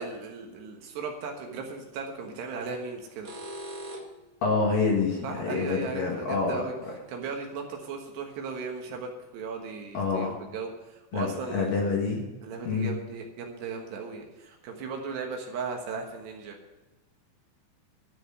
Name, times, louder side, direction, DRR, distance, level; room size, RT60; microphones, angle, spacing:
voice 1, 0.0-3.3 5.2-6.7 7.1-11.7 12.4-16.6, right 5 dB, 70° right, 2 dB, 3.3 m, -37 dB
sound 1, 2.0-2.2 3.0-4.3 7.0-7.1 7.8-7.9 8.3-8.4 8.8-8.9, right 1 dB, 90° right, 1.0 m, -41 dB
voice 2, 4.4-6.9 9.9-10.4 11.1-12.3 12.6-12.9, left 4 dB, 60° left, -1 dB, 2.8 m, -27 dB
13.0 x 6.4 x 9.8 m, 1.1 s
omnidirectional pair, 5.5 m